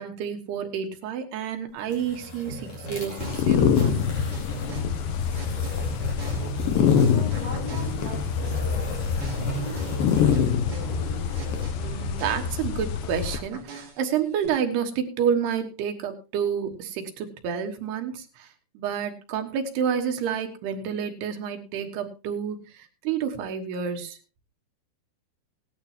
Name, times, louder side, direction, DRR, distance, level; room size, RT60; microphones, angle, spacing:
voice 1, 0.0-4.2 11.8-18.5 18.8-24.2, right 7 dB, 85° right, 5 dB, 3.5 m, -29 dB
sound 1, 1.8-11.7, equal, 40° left, 5.3 m, -35 dB
sound 2, 2.5-6.9 7.3-12.9 13.3-14.5, right 4 dB, 55° right, 4.2 m, -43 dB
sound 3, 3.2-13.4, left 8 dB, 75° left, 2.4 m, -25 dB
voice 2, 6.4-10.1, equal, 10° left, -1 dB, 3.3 m, -42 dB
18.0 x 11.5 x 2.9 m, 0.29 s
omnidirectional pair, 4.6 m